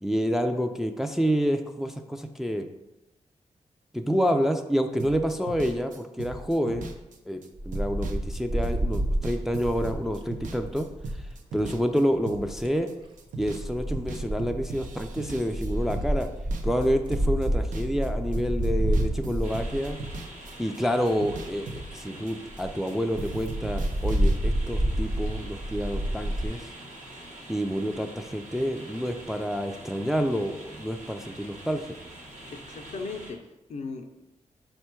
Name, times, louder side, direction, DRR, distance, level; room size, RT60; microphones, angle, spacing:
voice 1, 0.0-2.7 3.9-6.9 7.3-10.9 11.5-12.9 13.4-16.3 16.6-20.0 20.6-26.7 27.5-31.8, equal, 5° right, 5 dB, 0.3 m, -28 dB
sound 1, 5.0-13.7 13.9-18.1 18.3-22.9 23.2-24.4, right 2 dB, 90° right, 0.4 m, -39 dB
Wind, 7.6-11.2 12.3-12.8 13.5-20.5 21.1-21.2 21.4-21.5 21.8-21.9 22.2-22.3 22.5-22.7 23.1-26.5, right 1 dB, 40° right, 0.6 m, -29 dB
sound 2, 19.4-33.3, right 1 dB, 75° right, 1.0 m, -45 dB
voice 2, 32.5-34.2, left 4 dB, 65° left, 5 dB, 0.4 m, -38 dB
4.4 x 2.2 x 4.3 m, 0.93 s
cardioid pair, 70°, 13 cm